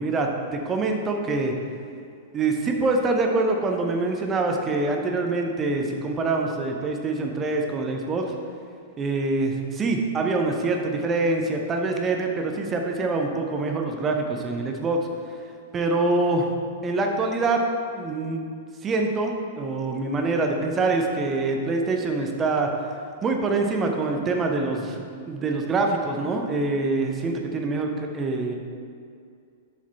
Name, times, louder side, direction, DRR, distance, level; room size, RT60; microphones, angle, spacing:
voice 1, 0.0-1.5 2.3-8.3 9.0-15.1 15.7-16.5 16.8-17.6 18.0-18.4 18.8-22.7 23.2-28.5, right 3 dB, 20° right, 3 dB, 0.7 m, -25 dB
6.8 x 5.1 x 4.0 m, 2.3 s
figure-of-eight pair, 100°, 0 cm